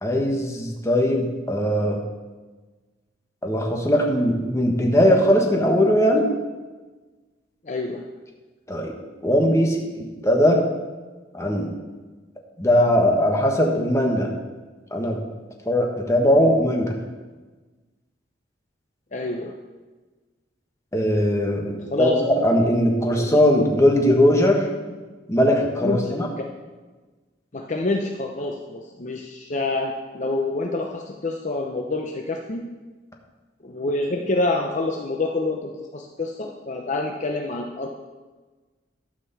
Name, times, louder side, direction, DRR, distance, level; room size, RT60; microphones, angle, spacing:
voice 1, 0.0-2.0 3.4-6.3 8.7-8.9 9.2-10.6 11.3-11.7 12.6-14.3 14.9-15.2 15.7-17.0 20.9-24.7 25.3-26.3, equal, 15° left, 1 dB, 1.4 m, -20 dB
voice 2, 7.6-8.0 19.1-19.5 21.9-22.2 25.8-26.4 27.5-32.7 33.6-37.9, left 2 dB, 40° left, 1 dB, 0.7 m, -27 dB
12.0 x 5.2 x 6.9 m, 1.3 s
head